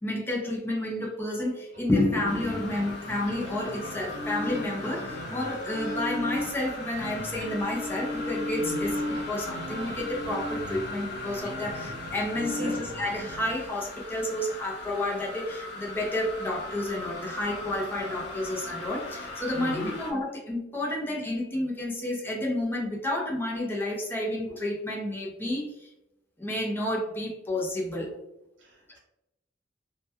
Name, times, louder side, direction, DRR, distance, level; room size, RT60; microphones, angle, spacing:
voice 1, 0.0-9.0 9.3-25.9 26.4-28.2, left 1 dB, 10° left, -2 dB, 0.5 m, -30 dB
sound 1, 1.7-13.5, left 1 dB, 55° right, 1.0 m, -36 dB
sound 2, 2.2-20.1, left 2 dB, 60° left, 0.4 m, -39 dB
voice 2, 8.6-8.9 12.4-12.7 19.5-19.9 28.6-29.0, equal, 75° right, -1 dB, 0.6 m, -38 dB
2.2 x 2.2 x 2.8 m, 0.89 s
head